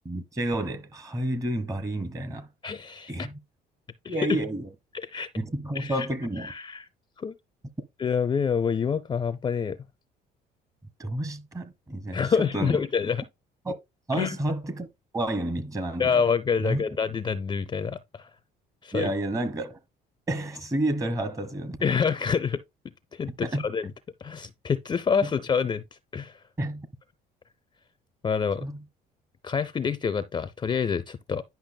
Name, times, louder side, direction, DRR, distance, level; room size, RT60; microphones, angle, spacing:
voice 1, 0.0-2.5 3.1-3.3 4.1-4.7 5.4-6.5 11.0-12.2 12.5-12.8 13.6-13.8 14.1-14.9 15.1-16.2 16.6-16.8 18.9-19.8 20.3-21.8 23.3-23.6 26.6-26.9 28.6-28.8, right 1 dB, 20° right, 1.1 m, -30 dB
voice 2, 2.6-3.1 4.0-4.4 4.9-5.3 5.8-6.1 6.4-6.8 7.2-7.3 8.0-9.8 12.1-13.2 14.1-14.4 16.0-18.3 18.8-19.1 21.8-22.6 23.1-23.9 24.2-25.8 26.1-26.4 28.2-28.6 29.4-31.4, left 6 dB, 25° left, 0.4 m, -27 dB
10.5 x 5.7 x 2.2 m
cardioid pair, 110°, 17 cm